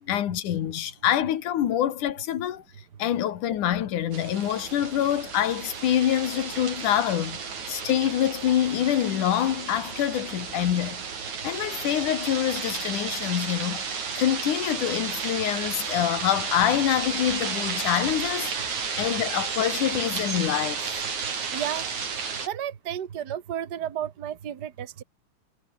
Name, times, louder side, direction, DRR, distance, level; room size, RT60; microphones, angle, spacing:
voice 1, 0.1-2.6 3.0-7.4 7.7-11.0 11.4-13.9 14.2-20.8, left 11 dB, 60° left, 2.9 m, -26 dB
sound 1, 4.1-22.5, right 6 dB, 50° right, 5.0 m, -33 dB
voice 2, 21.5-21.9 22.4-25.0, right 10 dB, 75° right, 0.9 m, -32 dB
omnidirectional pair, 4.4 m